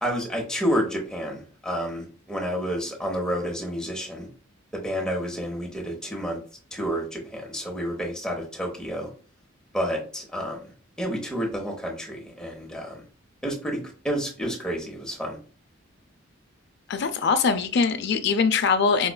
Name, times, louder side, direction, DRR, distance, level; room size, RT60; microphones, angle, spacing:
voice 1, 0.0-4.3 4.7-6.4 6.7-9.1 9.7-10.6 11.0-13.0 13.4-13.8 14.0-15.4, equal, 5° left, -1 dB, 0.7 m, -29 dB
voice 2, 16.9-19.1, left 5 dB, 55° left, 10 dB, 0.4 m, -22 dB
5.0 x 2.3 x 2.2 m, 0.39 s
head